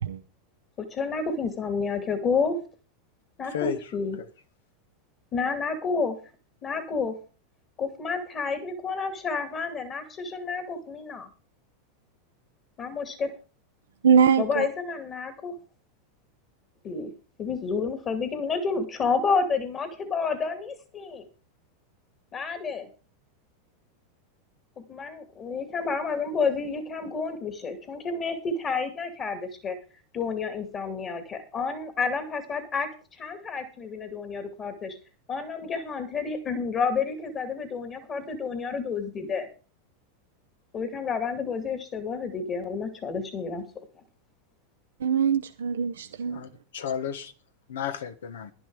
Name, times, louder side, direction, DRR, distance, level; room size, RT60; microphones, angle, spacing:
voice 1, 0.8-2.6 3.4-4.2 5.3-6.2 6.6-7.2 7.8-11.3 12.8-13.3 14.4-15.5 16.8-17.1 17.4-21.2 22.3-22.9 24.9-29.8 30.1-35.0 35.3-39.5 40.7-43.6, left 5 dB, 35° left, 2.5 m, -30 dB
voice 2, 3.5-3.8 4.2-4.3 46.3-47.3 47.7-48.5, left 8 dB, 80° left, 1.4 m, -32 dB
voice 3, 14.0-14.7 45.0-46.4, right 7 dB, 90° right, 0.7 m, -22 dB
11.5 x 11.0 x 4.8 m
hypercardioid pair, 110°, 0 cm